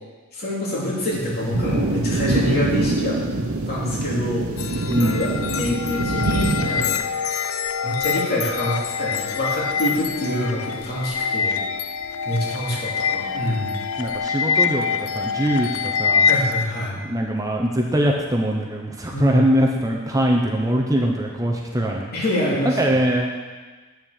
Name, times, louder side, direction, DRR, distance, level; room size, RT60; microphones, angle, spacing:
voice 1, 0.3-3.2 3.7-5.3 5.6-6.9 7.8-11.6 12.2-13.7 16.2-17.0 19.1-19.4 22.1-22.8, equal, 50° left, -6 dB, 2.9 m, -26 dB
sound 1, 1.1-7.0, right 2 dB, 80° right, 1.0 m, -25 dB
sound 2, 4.6-16.7, left 6 dB, 75° left, 0.5 m, -25 dB
voice 2, 4.9-5.2 14.0-16.3 17.0-22.1 22.6-23.3, right 1 dB, 15° right, 0 dB, 0.8 m, -22 dB
8.8 x 6.3 x 6.5 m, 1.3 s
head